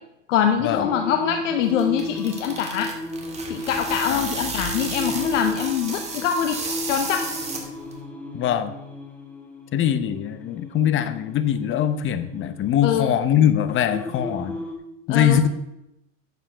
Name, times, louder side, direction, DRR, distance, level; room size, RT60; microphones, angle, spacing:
voice 1, 0.3-2.9 3.5-6.6 6.9-7.2 12.8-13.1 15.1-15.4, left 9 dB, 80° left, 5 dB, 1.0 m, -24 dB
Singing, 0.7-14.7, left 1 dB, 5° left, 1.7 m, -34 dB
sound 1, 1.6-8.0, right 3 dB, 15° right, 1.9 m, -33 dB
voice 2, 8.3-8.7 9.7-14.5 15.1-15.5, left 9 dB, 35° left, 11 dB, 0.9 m, -22 dB
8.8 x 7.3 x 5.6 m, 0.87 s
hypercardioid pair, 110°, 37 cm